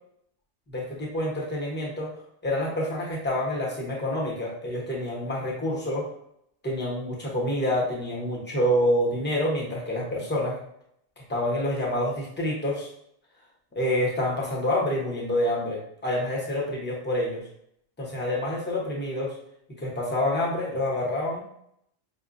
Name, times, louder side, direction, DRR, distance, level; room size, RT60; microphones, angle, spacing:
voice 1, 0.7-2.1 2.4-6.1 6.6-10.5 11.3-12.9 13.7-17.4 18.0-19.3 19.8-21.4, left 1 dB, 10° left, -4 dB, 0.7 m, -27 dB
5.3 x 2.2 x 2.5 m, 0.72 s
omnidirectional pair, 1.3 m